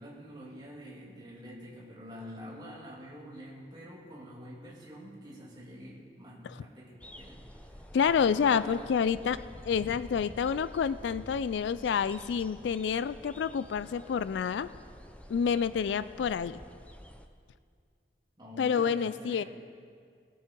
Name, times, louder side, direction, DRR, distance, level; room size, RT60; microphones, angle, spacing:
voice 1, 0.0-8.9 18.4-19.5, equal, 25° right, -5 dB, 2.7 m, -47 dB
sound 1, 7.0-17.3, equal, 5° left, 0.5 m, -49 dB
voice 2, 7.9-14.7 15.3-16.6 18.6-19.4, left 7 dB, 75° left, 15 dB, 0.3 m, -28 dB
19.0 x 8.5 x 4.5 m, 2.2 s
head